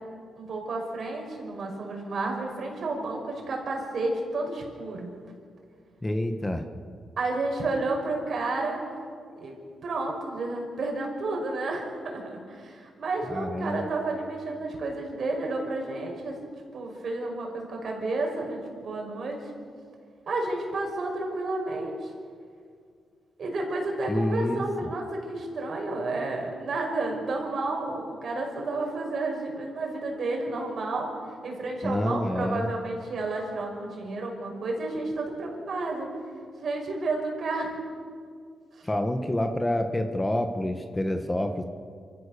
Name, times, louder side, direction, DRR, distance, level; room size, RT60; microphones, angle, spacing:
voice 1, 0.4-5.1 7.2-8.8 9.4-9.5 9.8-16.4 16.7-19.4 20.3-22.1 23.4-31.1 31.4-36.1 36.6-37.7 38.8-38.9, right 2 dB, 60° right, 1 dB, 5.7 m, -31 dB
voice 2, 6.0-6.6 13.3-13.9 24.1-24.6 31.8-32.7 38.8-41.6, left 1 dB, 15° left, 6 dB, 1.4 m, -28 dB
27.0 x 15.5 x 6.8 m, 2.2 s
cardioid pair, 95°, 0 cm